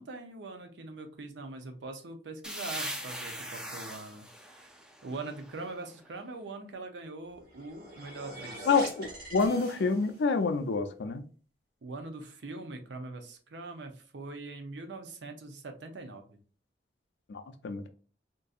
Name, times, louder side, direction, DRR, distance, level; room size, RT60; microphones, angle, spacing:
voice 1, 0.0-4.7 5.0-8.7 11.8-16.4, right 3 dB, 85° right, 6 dB, 0.6 m, -42 dB
sound 1, 2.4-6.0, equal, 5° right, 0.4 m, -41 dB
sound 2, 7.3-10.3, right 1 dB, 55° right, 1.3 m, -44 dB
voice 2, 8.7-11.2 17.3-17.9, left 4 dB, 80° left, 8 dB, 0.5 m, -28 dB
3.8 x 2.6 x 2.4 m, 0.40 s
head